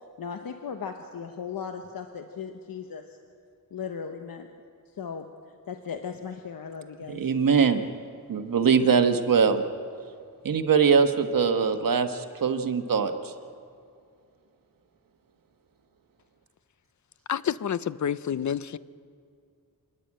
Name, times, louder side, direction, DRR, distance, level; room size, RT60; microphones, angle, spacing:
voice 1, 0.2-3.0 3.7-4.5 5.0-5.3 5.7-7.2, left 6 dB, 75° left, 5 dB, 1.1 m, -37 dB
voice 2, 7.1-7.8 8.3-9.6 10.4-13.3, right 6 dB, 70° right, 7 dB, 1.4 m, -22 dB
voice 3, 17.3-18.8, left 8 dB, 55° left, 16 dB, 0.6 m, -28 dB
27.0 x 11.0 x 8.7 m, 2.3 s
wide cardioid pair, 140°, 35 cm